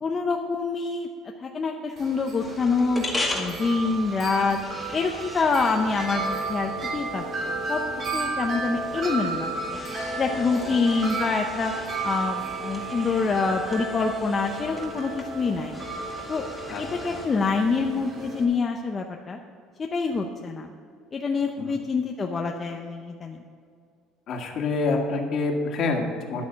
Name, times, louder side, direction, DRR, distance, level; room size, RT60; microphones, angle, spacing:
voice 1, 0.0-1.1 1.4-3.1 3.3-4.6 4.9-7.8 8.1-9.5 10.2-11.7 12.0-15.8 16.3-16.4 16.8-19.4 19.8-20.7 21.1-23.4, left 4 dB, 25° left, 2 dB, 0.7 m, -26 dB
Wind chime, 2.0-18.4, right 3 dB, 40° right, 2.4 m, -33 dB
sound 1, 2.4-17.3, left 1 dB, 5° left, 2.0 m, -38 dB
voice 2, 10.5-10.8 16.7-17.2 21.6-21.7 24.3-26.4, left 3 dB, 50° left, 1 dB, 2.0 m, -27 dB
10.5 x 8.5 x 6.2 m, 2.3 s
cardioid pair, 130°, 0 cm